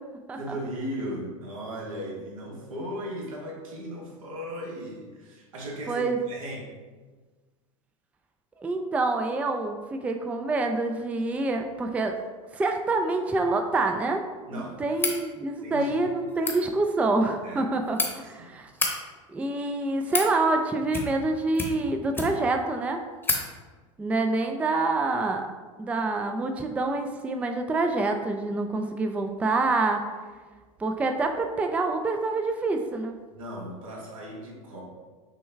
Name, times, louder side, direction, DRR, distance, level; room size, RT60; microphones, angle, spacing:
voice 1, 0.3-6.6 14.5-14.8 15.6-15.9 17.4-17.6 18.2-18.6 33.3-34.8, equal, 85° right, -2 dB, 1.3 m, -37 dB
voice 2, 8.6-12.2 12.5-14.2 14.5-18.7 19.3-23.0 24.0-25.5 25.8-30.1 30.8-33.2, right 3 dB, 10° right, 5 dB, 0.3 m, -26 dB
sound 1, 14.9-15.2 16.3-16.6 17.5-18.1 18.7-18.9 19.7-20.3 20.9-21.3 21.5-22.5 22.8-22.9 23.2-23.4, left 3 dB, 10° left, 0.9 m, -29 dB
6.3 x 2.2 x 3.3 m, 1.4 s
hypercardioid pair, 100°, 17 cm